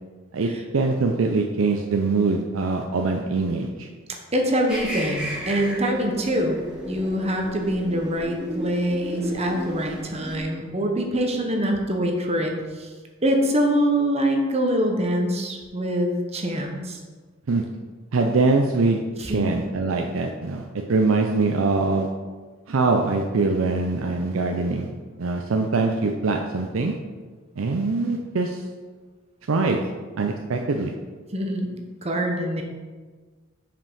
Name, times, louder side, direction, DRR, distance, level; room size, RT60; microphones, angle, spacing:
voice 1, 0.3-3.9 17.5-17.6 18.1-19.0 19.3-22.1 22.7-24.9 25.2-26.9 27.6-28.6 29.5-29.8 30.2-30.9, right 3 dB, 85° right, 3 dB, 0.5 m, -23 dB
voice 2, 4.3-6.6 6.9-12.9 13.2-17.0 19.2-19.5 31.3-32.6, equal, 30° right, 3 dB, 0.9 m, -24 dB
sound 1, 4.7-10.4, equal, 5° right, 2.0 m, -34 dB
5.4 x 5.2 x 5.5 m, 1.4 s
head